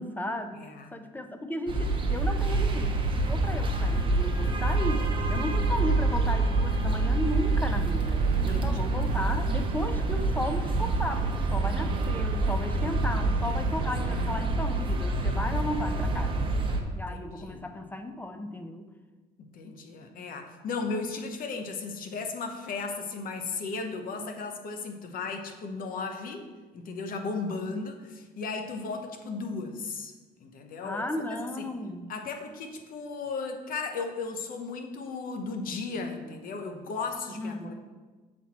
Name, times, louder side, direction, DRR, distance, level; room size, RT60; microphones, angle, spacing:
voice 1, 0.0-16.5 17.0-18.9 30.8-32.1 37.3-37.7, left 1 dB, 10° left, 7 dB, 0.5 m, -35 dB
voice 2, 0.5-0.9 8.5-9.0 13.6-13.9 17.1-17.6 19.4-26.5 26.7-30.1 30.4-31.1 31.6-31.7 32.1-37.7, left 4 dB, 55° left, 5 dB, 0.9 m, -35 dB
sound 1, 1.7-16.8, right 2 dB, 30° right, 0.9 m, -27 dB
sound 2, 8.1-14.5, right 5 dB, 50° right, 0.6 m, -41 dB
7.2 x 4.3 x 4.2 m, 1.4 s
cardioid pair, 110°, 17 cm